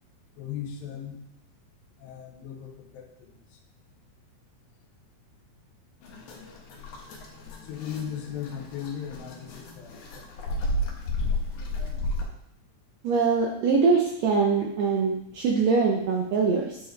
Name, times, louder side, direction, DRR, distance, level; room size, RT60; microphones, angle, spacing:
voice 1, 0.4-1.2 2.0-3.6 7.6-10.7, left 8 dB, 90° left, 3 dB, 2.6 m, -38 dB
sound 1, 6.0-12.2, left 1 dB, 65° left, 2.3 m, -32 dB
voice 2, 13.0-16.8, right 5 dB, 80° right, -1 dB, 1.5 m, -23 dB
8.5 x 4.7 x 3.2 m, 0.79 s
omnidirectional pair, 4.0 m